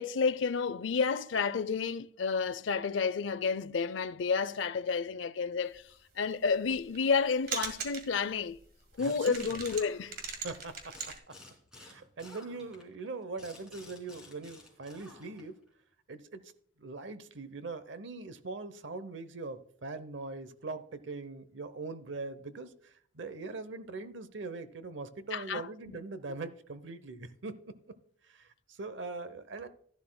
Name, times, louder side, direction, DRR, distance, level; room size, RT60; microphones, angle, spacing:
voice 1, 0.0-8.6 9.0-10.2 25.3-26.0, left 5 dB, 75° left, 0.5 m, -31 dB
sound 1, 6.3-7.2 7.5-8.2 8.5-8.6 8.9-9.0 9.3-11.2, right 6 dB, 55° right, 1.9 m, -39 dB
sound 2, 9.0-10.5 10.9-15.6, left 2 dB, 5° right, 3.0 m, -54 dB
voice 2, 9.0-9.5 10.4-11.3 11.8-15.5 16.1-16.5 16.8-27.7 28.2-29.7, right 3 dB, 70° right, 0.8 m, -42 dB
13.0 x 11.5 x 2.2 m
head